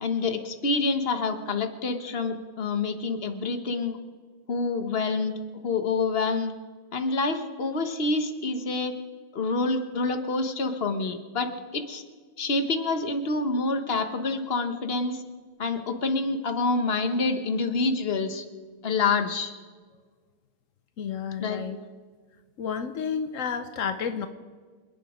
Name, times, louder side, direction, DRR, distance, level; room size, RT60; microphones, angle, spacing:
voice 1, 0.0-4.0 4.5-5.4 5.6-6.5 6.9-8.9 9.3-12.0 12.4-15.2 15.6-18.4 18.8-19.5 21.4-21.6, left 3 dB, 35° left, 7 dB, 1.1 m, -27 dB
voice 2, 21.0-21.8 22.6-24.3, left 7 dB, 75° left, 9 dB, 0.7 m, -31 dB
27.0 x 10.0 x 5.1 m, 1.5 s
omnidirectional pair, 2.4 m